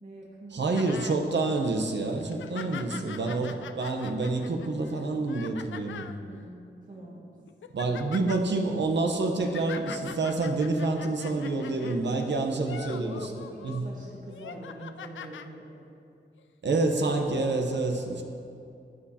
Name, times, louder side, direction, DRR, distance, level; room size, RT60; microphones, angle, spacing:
voice 1, 0.0-1.0 2.5-3.5 6.0-7.3 11.3-11.5 11.8-12.4 12.7-15.7, right 1 dB, 45° right, -6 dB, 1.8 m, -44 dB
voice 2, 0.5-6.0 7.7-13.3 13.6-13.9 16.6-18.2, right 3 dB, 70° right, 3 dB, 0.9 m, -28 dB
sound 1, 0.8-1.2 1.7-1.8 2.2-6.2 6.9-7.1 7.5-8.4 9.2-12.0 12.5-13.8 14.3-15.5 16.4-16.5, left 8 dB, 90° left, 0.4 m, -43 dB
15.5 x 8.5 x 2.8 m, 2.6 s
wide cardioid pair, 105°, 19 cm